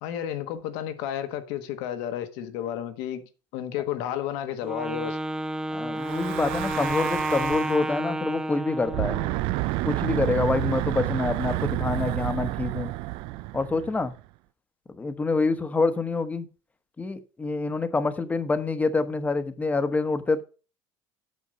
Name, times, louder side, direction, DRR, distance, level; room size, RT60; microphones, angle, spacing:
voice 1, 0.0-3.2 3.5-5.2, left 10 dB, 75° left, 1.4 m, -32 dB
Wind instrument woodwind instrument, 4.6-9.5, right 1 dB, 5° right, 0.5 m, -31 dB
voice 2, 5.7-9.2 9.8-12.9 13.5-14.1 15.0-16.5 17.0-20.4, left 3 dB, 15° left, 1.0 m, -26 dB
Breathing / Wind, 6.0-7.9 8.8-14.2, right 18 dB, 70° right, 0.4 m, -30 dB
8.4 x 6.2 x 5.3 m
supercardioid pair, 120°, 9 cm